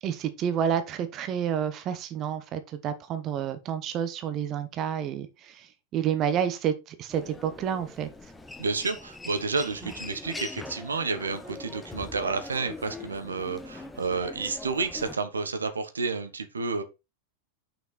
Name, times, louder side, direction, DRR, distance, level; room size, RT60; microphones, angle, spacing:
voice 1, 0.0-8.1, right 8 dB, 35° right, 0.9 m, -29 dB
Human voice, 7.1-15.2, left 2 dB, 10° left, 0.9 m, -42 dB
voice 2, 8.6-16.8, right 4 dB, 75° right, 1.1 m, -30 dB
6.1 x 5.7 x 4.1 m
figure-of-eight pair, 90°, 0 cm